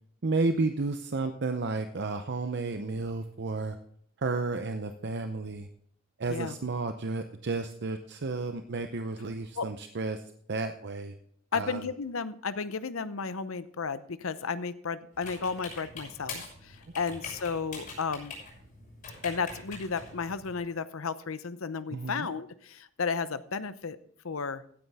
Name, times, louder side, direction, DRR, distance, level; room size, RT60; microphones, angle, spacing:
voice 1, 0.2-3.8 4.2-5.7 6.2-10.2 10.5-11.2 11.5-11.8 21.9-22.3, right 3 dB, 55° right, 7 dB, 0.7 m, -32 dB
voice 2, 11.5-18.4 19.2-24.0 24.2-24.6, left 5 dB, 70° left, 14 dB, 0.7 m, -33 dB
sound 1, 15.1-20.6, left 3 dB, 45° left, 6.6 m, -44 dB
16.0 x 9.7 x 3.5 m, 0.63 s
head